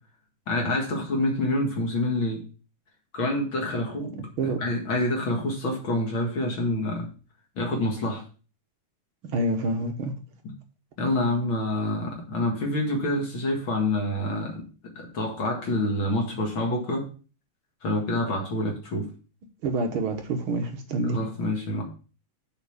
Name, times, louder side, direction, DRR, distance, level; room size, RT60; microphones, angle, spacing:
voice 1, 0.5-2.4 3.1-4.1 4.4-7.1 7.6-8.2 11.0-14.6 15.0-17.1 17.8-19.1 21.0-21.8, left 1 dB, 45° left, 2.3 m, -27 dB
voice 2, 4.0-4.6 9.3-10.1 19.6-21.2, right 2 dB, 65° right, 1.3 m, -27 dB
7.1 x 5.1 x 7.0 m
omnidirectional pair, 3.7 m